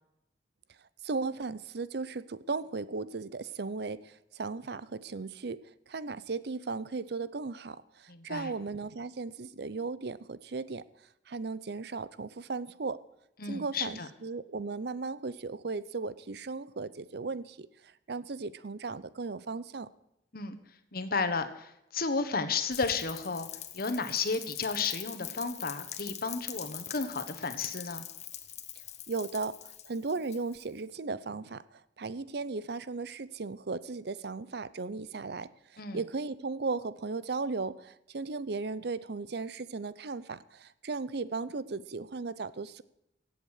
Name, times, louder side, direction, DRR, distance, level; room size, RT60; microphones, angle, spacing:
voice 1, 1.0-5.6 5.9-7.8 8.2-10.8 11.3-13.0 13.5-17.7 18.1-19.9 29.1-29.6 29.8-31.6 32.0-35.5 35.9-42.8, right 4 dB, 65° right, 17 dB, 0.7 m, -36 dB
voice 2, 8.1-8.5 13.4-14.1 20.3-20.6 20.9-23.5 23.7-28.0 35.8-36.0, left 4 dB, 60° left, 10 dB, 1.4 m, -33 dB
Rain, 22.7-30.8, left 11 dB, 40° left, 1.1 m, -43 dB
16.5 x 8.0 x 6.6 m, 0.83 s
head